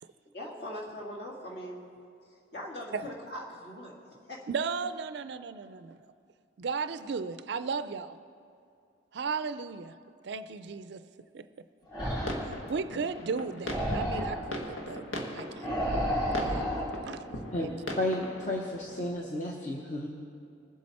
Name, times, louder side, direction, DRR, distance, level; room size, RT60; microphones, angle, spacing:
voice 1, 0.3-1.9 2.5-4.5, equal, 55° left, -3 dB, 2.1 m, -41 dB
voice 2, 4.5-6.0 6.6-8.2 9.1-9.9 10.2-11.0 11.3-11.5 12.4-15.0 15.3-15.7 16.4-16.7 17.1-17.2 17.6-17.8, right 5 dB, 55° right, 12 dB, 0.4 m, -35 dB
sound 1, 11.9-12.5 13.6-14.4 15.6-16.9, equal, 20° left, 3.4 m, -31 dB
sound 2, 12.1-19.1, left 1 dB, 85° left, 1.4 m, -40 dB
voice 3, 18.0-20.1, left 1 dB, 40° left, -1 dB, 0.8 m, -32 dB
21.5 x 7.6 x 4.2 m, 2.5 s
head